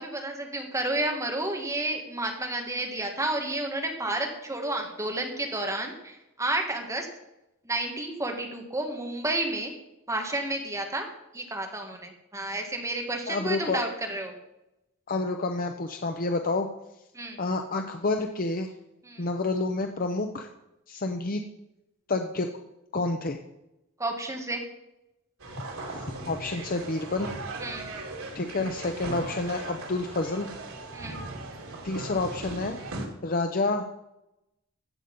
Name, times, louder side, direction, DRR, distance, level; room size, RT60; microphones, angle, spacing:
voice 1, 0.0-7.1 7.6-9.7 10.1-11.1 11.3-14.3 17.1-17.4 19.0-19.2 24.0-24.6 27.6-27.9 30.9-31.2, right 2 dB, 15° right, 2 dB, 1.7 m, -31 dB
voice 2, 13.3-13.8 15.1-16.7 17.4-18.7 19.2-20.5 20.9-21.4 22.1-22.5 22.9-23.4 25.9-27.3 28.3-30.5 31.8-32.8 33.2-33.9, left 3 dB, 45° left, 5 dB, 0.8 m, -29 dB
sound 1, 25.4-33.1, right 2 dB, 90° right, 2.9 m, -38 dB
14.5 x 8.1 x 5.4 m, 0.90 s
head